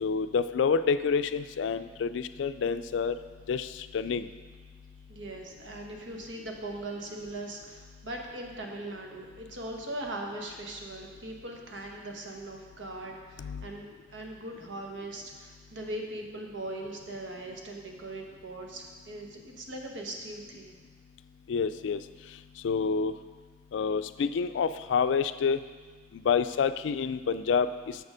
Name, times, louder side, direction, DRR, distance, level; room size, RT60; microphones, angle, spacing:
voice 1, 0.0-3.2 3.5-4.3 13.4-13.7 21.5-22.0 22.6-23.1 23.7-25.6 26.1-28.0, left 6 dB, 80° left, 12 dB, 0.3 m, -28 dB
voice 2, 5.1-20.7, right 1 dB, 85° right, 1 dB, 1.2 m, -40 dB
6.9 x 6.5 x 5.0 m, 1.5 s
head